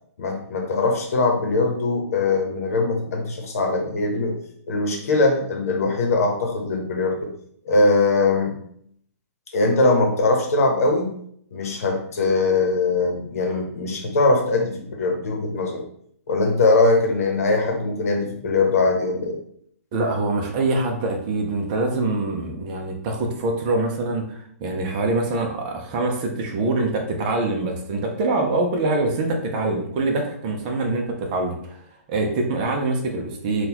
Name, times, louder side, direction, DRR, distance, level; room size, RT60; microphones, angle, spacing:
voice 1, 0.2-4.3 4.7-7.3 7.6-8.6 9.5-11.1 11.5-15.8 16.3-19.3, left 3 dB, 70° left, 2 dB, 0.9 m, -21 dB
voice 2, 19.9-31.8 32.1-33.7, right 2 dB, 35° right, 2 dB, 0.6 m, -24 dB
3.8 x 2.3 x 2.9 m, 0.67 s
hypercardioid pair, 155°, 8 cm